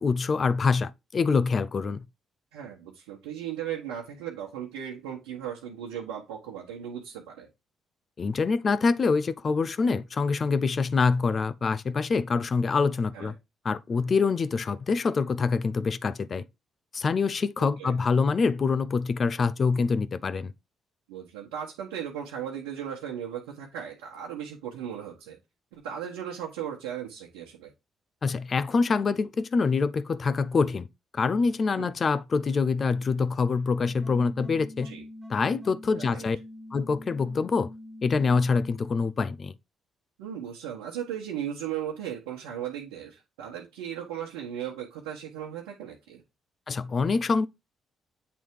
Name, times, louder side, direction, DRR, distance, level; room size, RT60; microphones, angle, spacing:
voice 1, 0.0-2.0 8.2-13.3 13.6-16.4 16.9-20.5 28.2-30.9 31.1-34.9 35.3-36.4 36.7-37.7 38.0-39.5 46.7-47.5, left 4 dB, 45° left, 0.6 m, -25 dB
voice 2, 2.5-7.5 13.1-13.3 17.6-17.9 21.1-25.4 25.7-27.7 31.8-31.9 34.8-35.0 35.9-36.2 40.2-46.2, right 9 dB, 90° right, 1.2 m, -37 dB
sound 1, 33.9-38.8, left 1 dB, 5° right, 1.9 m, -44 dB
8.1 x 3.5 x 4.7 m
hypercardioid pair, 55°, 0 cm